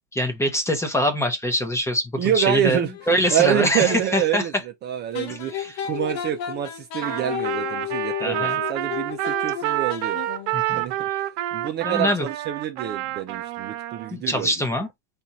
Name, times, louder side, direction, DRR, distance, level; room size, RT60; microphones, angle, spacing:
voice 1, 0.1-2.8 3.1-4.4 5.3-5.8 8.2-8.6 10.5-10.8 11.1-11.2 11.8-12.3 14.1-14.9, equal, 10° left, 0.7 m, -24 dB
voice 2, 2.2-4.5 4.8-10.2 10.7-10.9 11.5-14.5, right 10 dB, 30° right, 0.5 m, -26 dB
sound 1, 2.9-4.3 5.1-10.6, left 10 dB, 50° left, 1.0 m, -33 dB
Trumpet, 7.0-14.1, right 14 dB, 60° right, 0.9 m, -28 dB
4.4 x 2.4 x 3.9 m
supercardioid pair, 135°, 35 cm